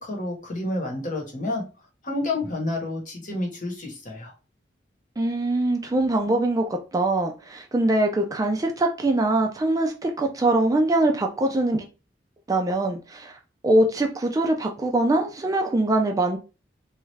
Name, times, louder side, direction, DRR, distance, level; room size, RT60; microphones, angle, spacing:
voice 1, 0.0-1.6 2.0-4.3, left 2 dB, 45° left, 1.1 m, -29 dB
voice 2, 5.2-11.8 12.5-13.3 13.6-16.4, right 2 dB, 20° right, 0.4 m, -23 dB
3.1 x 2.4 x 3.2 m
head